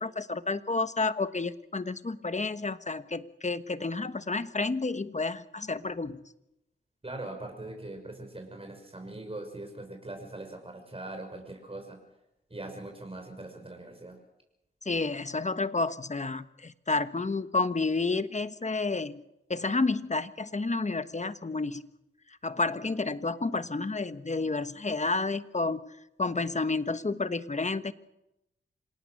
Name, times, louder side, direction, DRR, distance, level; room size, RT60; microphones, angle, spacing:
voice 1, 0.0-6.2 14.8-19.2 19.5-21.9 22.4-25.9 26.2-27.9, left 3 dB, 35° left, 12 dB, 1.3 m, -30 dB
voice 2, 7.0-12.0 12.5-14.2, right 2 dB, 25° right, 3 dB, 6.0 m, -41 dB
27.0 x 18.0 x 6.6 m, 0.86 s
cardioid pair, 50°, 21 cm